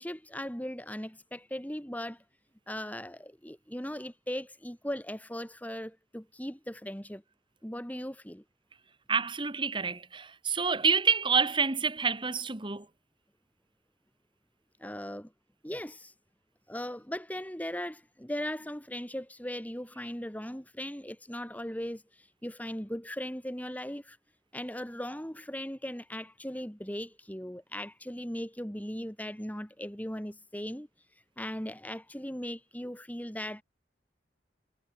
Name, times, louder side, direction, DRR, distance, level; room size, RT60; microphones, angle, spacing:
voice 1, 0.0-2.2 2.7-7.2 7.6-8.4 14.8-15.3 15.6-16.1 16.7-24.2 24.5-30.9 31.4-33.6, equal, 10° left, 3.5 m, -38 dB
voice 2, 9.1-12.9, right 5 dB, 25° right, 1.4 m, -28 dB
head